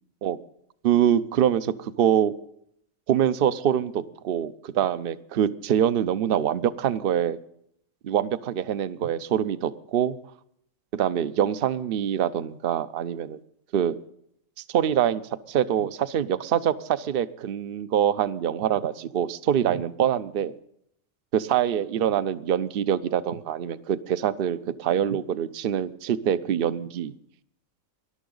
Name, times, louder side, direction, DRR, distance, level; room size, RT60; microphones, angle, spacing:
voice 1, 0.8-2.3 3.1-7.4 8.0-10.2 10.9-13.4 13.7-14.0 14.7-15.2 15.5-20.5 21.3-27.1, right 9 dB, 55° right, 14 dB, 0.7 m, -24 dB
20.0 x 12.0 x 3.9 m, 0.71 s
omnidirectional pair, 1.4 m